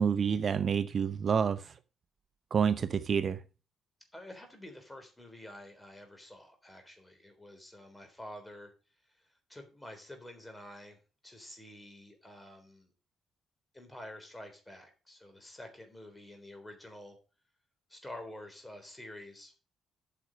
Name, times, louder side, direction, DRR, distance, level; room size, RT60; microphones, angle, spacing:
voice 1, 0.0-1.7 2.5-3.4, right 7 dB, 50° right, 0.6 m, -28 dB
voice 2, 4.1-8.7 9.5-12.9 13.7-17.2 17.9-19.5, left 1 dB, 10° left, 3.6 m, -49 dB
8.4 x 6.2 x 6.3 m
cardioid pair, 90°, 0 cm